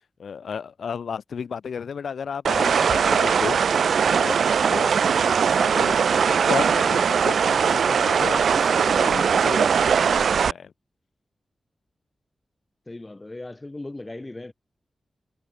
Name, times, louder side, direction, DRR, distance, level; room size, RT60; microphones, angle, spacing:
voice 1, 0.2-3.6 4.1-4.9 5.6-10.7, left 6 dB, 75° left, 4.4 m, -33 dB
sound 1, 2.4-10.5, right 6 dB, 85° right, 1.0 m, -20 dB
voice 2, 12.9-14.5, left 2 dB, 20° left, 5.9 m, -38 dB
wide cardioid pair, 170°, 0 cm